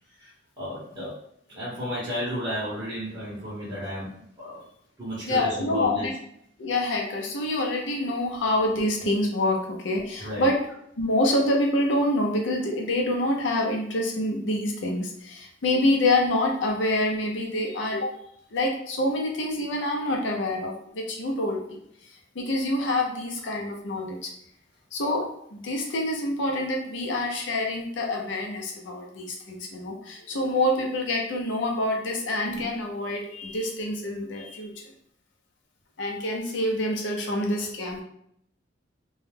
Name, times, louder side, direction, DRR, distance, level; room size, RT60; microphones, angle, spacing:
voice 1, 0.2-1.1 1.5-4.6 5.0-6.1 10.2-10.5, equal, 20° right, -10 dB, 0.8 m, -33 dB
voice 2, 5.2-6.1 6.6-10.6 11.0-18.1 18.5-21.8 22.3-24.3 24.9-34.7 36.0-38.0, left 1 dB, 70° left, 1 dB, 0.6 m, -26 dB
2.2 x 2.1 x 3.2 m, 0.72 s
head